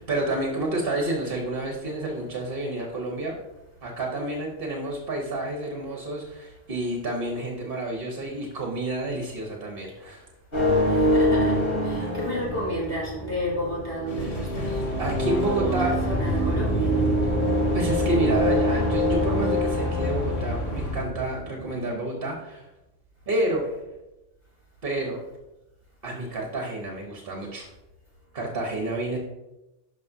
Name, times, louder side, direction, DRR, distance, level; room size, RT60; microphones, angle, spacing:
voice 1, 0.1-3.4 3.8-10.3 12.0-12.1 15.0-16.0 17.7-22.7 23.3-23.7 24.8-25.2 26.0-27.7 28.3-29.2, right 1 dB, 50° right, 0 dB, 1.2 m, -29 dB
sound 1, 10.5-21.9, equal, 50° left, 3.1 m, -25 dB
voice 2, 10.8-14.8 15.4-17.0, equal, 10° left, -6 dB, 2.9 m, -32 dB
sound 2, 14.1-21.0, right 1 dB, 75° left, 1.8 m, -34 dB
11.5 x 5.3 x 2.7 m, 0.98 s
omnidirectional pair, 1.3 m